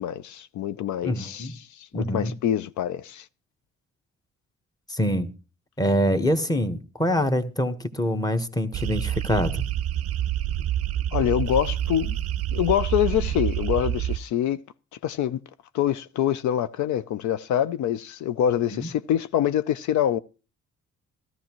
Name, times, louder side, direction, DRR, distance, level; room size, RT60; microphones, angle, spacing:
voice 1, 0.0-3.3 11.1-12.2 12.5-14.6 15.0-15.4 15.7-20.2, left 10 dB, 75° left, 0.5 m, -25 dB
voice 2, 1.0-1.5 1.9-2.3 4.9-5.3 5.8-9.6 18.7-18.9, equal, 10° left, 1.2 m, -25 dB
sound 1, 8.7-14.2, right 12 dB, 50° right, 0.5 m, -27 dB
14.0 x 13.5 x 3.0 m
cardioid pair, 90°, 30 cm